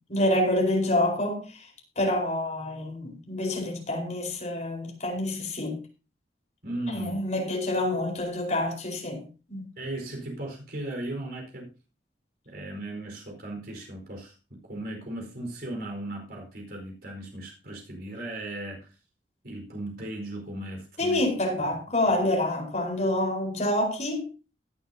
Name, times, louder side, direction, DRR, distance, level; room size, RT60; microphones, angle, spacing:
voice 1, 0.1-1.7 2.0-5.8 6.9-9.6 21.0-24.3, left 1 dB, 40° left, 4.5 m, -27 dB
voice 2, 6.6-7.1 9.8-11.8 12.4-18.9 19.4-21.2, right 1 dB, 55° right, 4.7 m, -37 dB
17.5 x 9.6 x 2.8 m
head